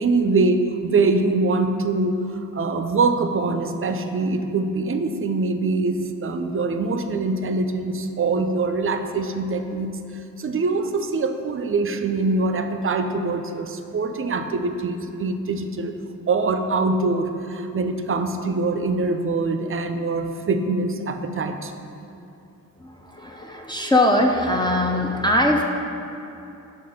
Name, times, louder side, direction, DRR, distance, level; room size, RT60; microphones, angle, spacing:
voice 1, 0.0-10.0 10.4-15.9 16.3-21.7, right 3 dB, 40° right, 7 dB, 0.5 m, -23 dB
voice 2, 22.8-25.6, left 1 dB, 15° left, -1 dB, 0.4 m, -21 dB
7.7 x 3.5 x 5.4 m, 2.7 s
wide cardioid pair, 85°, 33 cm